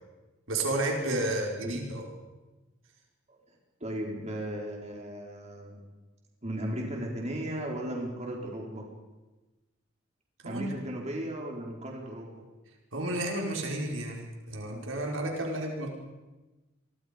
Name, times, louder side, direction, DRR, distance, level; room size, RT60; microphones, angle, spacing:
voice 1, 0.5-2.0 10.4-10.7 12.9-15.9, right 1 dB, 85° right, 0 dB, 5.1 m, -31 dB
voice 2, 3.8-5.9 6.4-8.9 10.4-12.3, right 1 dB, 35° right, -1 dB, 4.6 m, -36 dB
28.0 x 23.5 x 5.3 m, 1.1 s
head